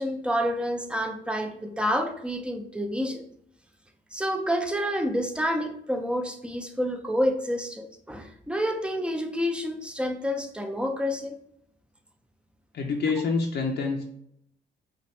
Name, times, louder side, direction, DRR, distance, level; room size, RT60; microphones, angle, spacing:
voice 1, 0.0-3.2 4.1-11.4, equal, 5° right, 5 dB, 0.6 m, -28 dB
voice 2, 12.7-14.0, left 4 dB, 60° left, 0 dB, 0.8 m, -27 dB
5.6 x 2.6 x 3.2 m, 0.72 s
cardioid pair, 90°, 20 cm